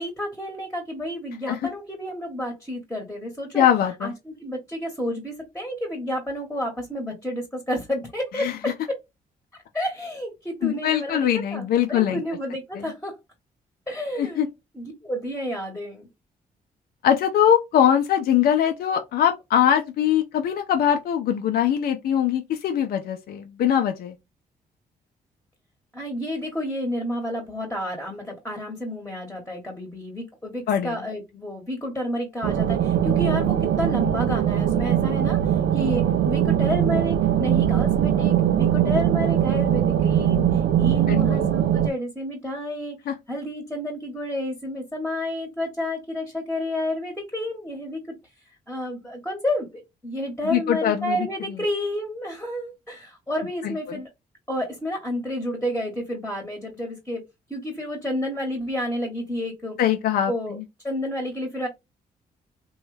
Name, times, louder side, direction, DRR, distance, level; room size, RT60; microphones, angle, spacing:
voice 1, 0.0-3.6 4.0-9.0 9.7-13.2 13.9-14.5 14.7-16.1 25.9-43.0 43.3-48.1 48.7-54.1 54.5-57.2 57.5-59.8 60.3-60.6 60.8-61.7, left 1 dB, 10° left, 1.1 m, -30 dB
voice 2, 3.5-4.1 8.4-8.6 10.6-12.2 12.8-12.9 14.2-14.5 17.0-24.1 30.7-31.0 41.1-41.5 43.1-43.2 50.4-51.2 53.6-53.7 59.8-60.3, left 9 dB, 75° left, 0.5 m, -22 dB
sound 1, 32.4-41.9, right 10 dB, 90° right, 0.4 m, -21 dB
3.0 x 2.3 x 3.2 m
cardioid pair, 70°, 16 cm